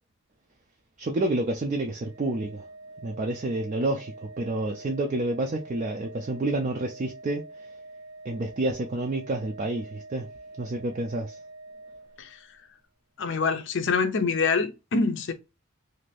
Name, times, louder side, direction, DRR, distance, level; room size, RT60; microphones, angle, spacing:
voice 1, 1.0-2.6 3.0-7.5 8.3-10.3 10.6-11.4, right 2 dB, 35° right, 0.3 m, -29 dB
Organ, 2.0-12.7, right 2 dB, 10° right, 0.7 m, -46 dB
voice 2, 13.2-15.3, left 4 dB, 60° left, 0.5 m, -25 dB
2.6 x 2.5 x 3.2 m
head